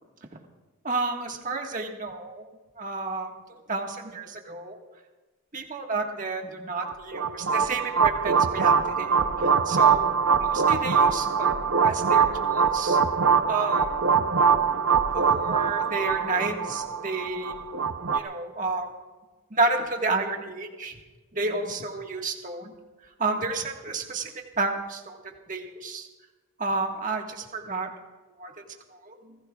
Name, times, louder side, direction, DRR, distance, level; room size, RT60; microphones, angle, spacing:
voice 1, 0.8-2.5 2.8-4.8 5.5-10.1 10.4-13.0 13.5-13.9 15.1-17.6 18.1-18.9 19.5-20.9 21.3-22.7 23.2-24.3 24.6-26.1 26.6-27.9 28.4-28.6 28.9-29.4, right 3 dB, 35° right, 2 dB, 1.6 m, -31 dB
sound 1, 6.8-18.2, right 6 dB, 65° right, 0.7 m, -23 dB
29.5 x 16.0 x 2.4 m, 1.2 s
head